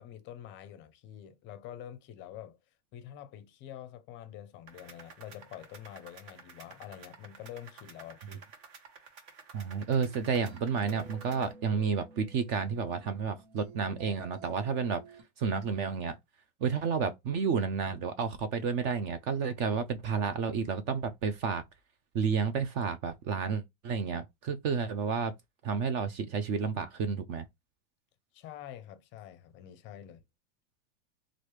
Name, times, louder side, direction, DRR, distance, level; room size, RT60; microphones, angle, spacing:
voice 1, 0.0-2.6 2.9-8.4 28.3-30.2, left 11 dB, 30° left, 0.6 m, -47 dB
sound 1, 4.7-11.5, right 5 dB, 50° right, 1.1 m, -53 dB
voice 2, 9.5-15.0 15.4-16.2 16.6-21.6 22.1-25.3 25.6-27.4, right 6 dB, 35° right, 0.4 m, -31 dB
sound 2, 10.0-15.2, right 4 dB, 80° right, 1.1 m, -52 dB
3.1 x 2.5 x 3.1 m
supercardioid pair, 140°, 36 cm